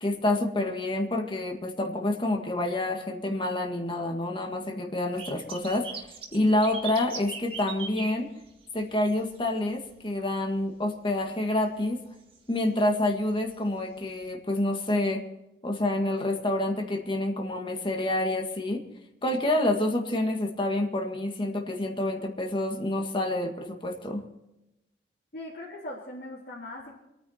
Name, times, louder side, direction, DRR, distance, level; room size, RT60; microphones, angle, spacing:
voice 1, 0.0-6.1 6.3-8.3 8.7-12.0 12.5-15.2 15.6-18.8 19.2-24.2, left 1 dB, 30° left, 2 dB, 1.9 m, -28 dB
sound 1, 5.2-9.4 9.6-10.0 10.4-10.5 11.8-11.9 12.3-12.4 13.5-13.6 14.3-14.4, right 5 dB, 30° right, 1.9 m, -39 dB
voice 2, 25.3-26.9, left 1 dB, 55° left, -6 dB, 3.7 m, -40 dB
26.5 x 9.7 x 4.4 m, 0.91 s
head